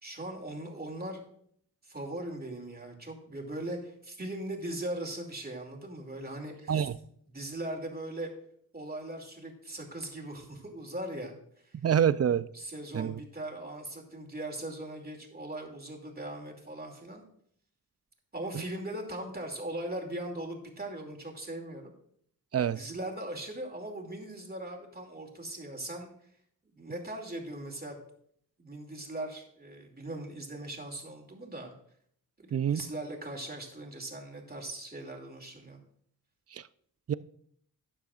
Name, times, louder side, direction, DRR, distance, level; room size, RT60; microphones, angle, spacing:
voice 1, 0.0-1.2 1.8-6.9 7.3-8.3 8.7-11.3 11.6-11.8 12.5-17.2 18.3-21.9 22.8-26.1 26.6-28.0 28.6-31.7 32.4-35.8, right 1 dB, 25° right, 2.6 m, -39 dB
voice 2, 11.8-12.5 12.9-13.2 22.5-22.8 32.5-32.8 36.5-36.6 37.1-37.2, right 8 dB, 40° right, 0.4 m, -26 dB
13.0 x 9.8 x 2.5 m
cardioid pair, 65°, 38 cm